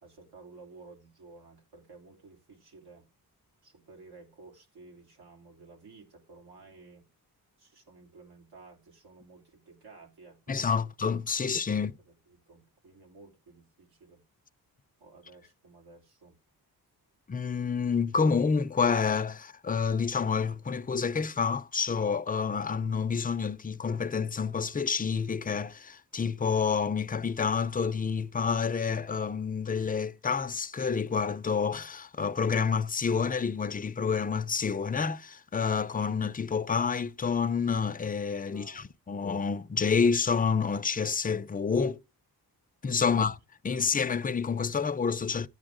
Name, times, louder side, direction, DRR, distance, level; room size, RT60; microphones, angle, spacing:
voice 1, 0.0-3.1 3.6-7.1 7.6-10.9 11.4-14.2 15.0-16.4 38.5-39.3 43.1-43.3 43.7-43.9, right 3 dB, 85° right, 3.6 m, -54 dB
voice 2, 10.5-11.9 17.3-42.0 42.8-43.4 43.6-45.5, left 5 dB, 25° left, 0.5 m, -28 dB
14.0 x 8.8 x 3.7 m
wide cardioid pair, 150°, 37 cm